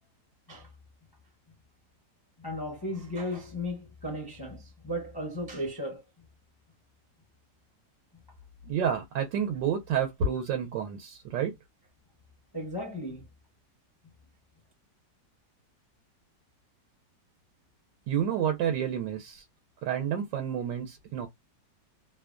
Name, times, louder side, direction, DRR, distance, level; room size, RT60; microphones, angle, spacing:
voice 1, 2.4-6.0 12.5-13.2, left 1 dB, 30° left, 0.4 m, -35 dB
voice 2, 8.6-11.5 18.1-19.4 19.8-21.3, right 7 dB, 85° right, 1.3 m, -29 dB
3.1 x 2.2 x 2.3 m
omnidirectional pair, 1.9 m